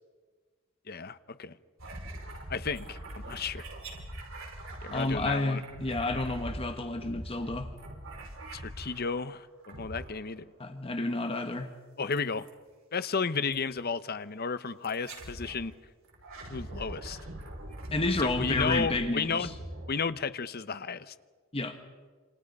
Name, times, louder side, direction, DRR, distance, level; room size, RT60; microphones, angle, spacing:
voice 1, 0.9-1.6 2.5-3.6 4.8-5.6 8.5-10.5 12.0-12.5 12.9-15.7 16.5-17.2 18.2-19.5 19.9-21.1, left 5 dB, 50° left, 13 dB, 0.9 m, -33 dB
sound 1, 1.8-9.2 9.6-10.4 12.1-12.5 13.5-13.7 14.8-15.6 16.1-20.4, right 1 dB, 80° right, 5.2 m, -42 dB
voice 2, 4.9-7.7 10.6-11.7 17.9-19.5 21.5-21.8, left 2 dB, 30° left, 7 dB, 1.4 m, -30 dB
28.0 x 28.0 x 5.4 m, 1.5 s
head